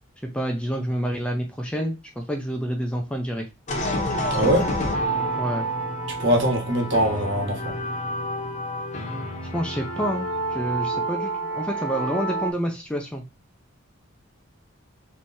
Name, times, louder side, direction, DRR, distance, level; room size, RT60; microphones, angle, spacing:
voice 1, 0.3-3.5 5.4-5.7 9.5-13.2, equal, 5° left, 0.4 m, -28 dB
sound 1, 3.7-12.5, right 1 dB, 35° left, 0.9 m, -28 dB
voice 2, 4.3-4.7 6.2-7.7, equal, 55° right, 1.4 m, -22 dB
3.3 x 3.1 x 4.2 m
head